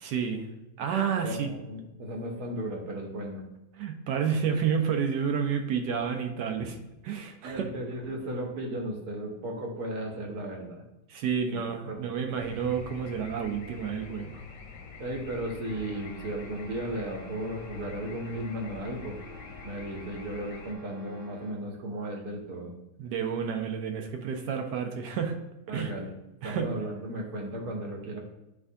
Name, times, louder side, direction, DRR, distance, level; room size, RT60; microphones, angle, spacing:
voice 1, 0.0-0.5 0.8-1.5 3.8-6.7 7.0-7.7 11.1-14.4 23.0-25.4 25.7-25.9 26.4-26.7, right 7 dB, 90° right, 5 dB, 1.3 m, -30 dB
voice 2, 1.2-3.5 6.6-6.7 7.4-10.8 11.5-12.4 15.0-19.2 19.6-22.7 25.7-26.1 26.4-28.2, right 1 dB, 70° right, 0 dB, 1.5 m, -35 dB
sound 1, 12.4-20.7, left 4 dB, 60° left, 1.0 m, -46 dB
sound 2, 15.6-21.7, left 1 dB, 15° right, 0.9 m, -50 dB
9.9 x 3.6 x 2.7 m, 0.94 s
omnidirectional pair, 1.8 m